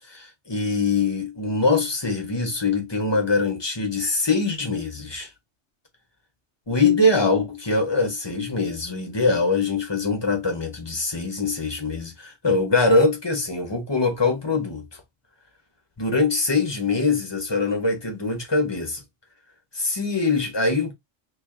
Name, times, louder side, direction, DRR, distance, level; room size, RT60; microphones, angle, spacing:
voice 1, 0.1-5.3 6.7-14.8 16.0-19.0 19.7-20.9, left 3 dB, 25° left, 0.9 m, -23 dB
3.2 x 2.6 x 3.7 m
omnidirectional pair, 1.3 m